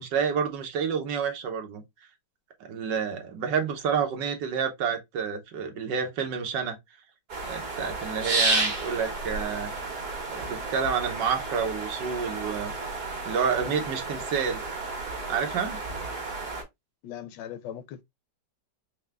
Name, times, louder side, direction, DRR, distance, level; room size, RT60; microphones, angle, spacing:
voice 1, 0.0-1.8 2.7-6.8 7.5-9.7 10.3-12.7 13.2-14.6 15.3-15.8, right 6 dB, 80° right, 1.5 m, -29 dB
sound 1, 7.3-16.6, right 3 dB, 65° right, 2.0 m, -32 dB
voice 2, 17.0-18.0, left 10 dB, 80° left, 1.2 m, -39 dB
4.6 x 2.2 x 3.2 m
omnidirectional pair, 1.9 m